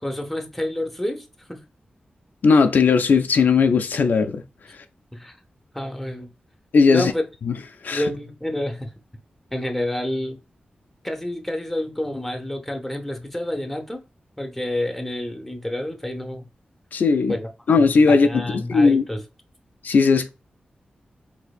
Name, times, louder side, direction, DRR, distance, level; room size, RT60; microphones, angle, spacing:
voice 1, 0.0-1.6 5.1-5.4 5.7-6.3 6.9-7.2 7.9-8.9 9.5-10.4 11.0-14.0 14.4-16.5 17.3-17.5 17.8-19.2, left 1 dB, 5° left, 0.7 m, -28 dB
voice 2, 2.4-4.4 6.7-7.1 7.5-7.6 7.8-8.0 16.9-17.3 17.7-19.0 19.8-20.3, left 4 dB, 75° left, 0.3 m, -17 dB
4.3 x 2.7 x 2.4 m
wide cardioid pair, 85°, 3 cm